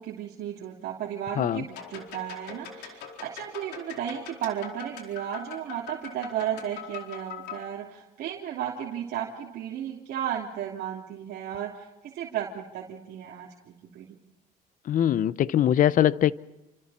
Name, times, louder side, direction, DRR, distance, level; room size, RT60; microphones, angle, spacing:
voice 1, 0.0-14.2, right 10 dB, 75° right, -3 dB, 3.1 m, -34 dB
sound 1, 1.7-7.6, left 7 dB, 80° left, 4.5 m, -42 dB
voice 2, 14.9-16.3, left 11 dB, 50° left, 17 dB, 0.8 m, -22 dB
29.0 x 26.5 x 4.3 m, 0.99 s
cardioid pair, 110°, 17 cm